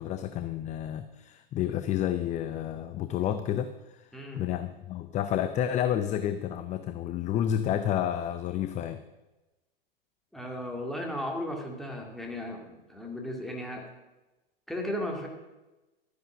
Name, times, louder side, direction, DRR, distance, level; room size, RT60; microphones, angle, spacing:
voice 1, 0.0-4.1 4.3-9.0, left 10 dB, 25° left, 11 dB, 0.6 m, -30 dB
voice 2, 4.1-4.5 10.3-13.8 14.7-15.3, left 1 dB, ahead, 0 dB, 2.4 m, -35 dB
12.5 x 9.7 x 6.2 m, 1.1 s
hypercardioid pair, 110°, 30 cm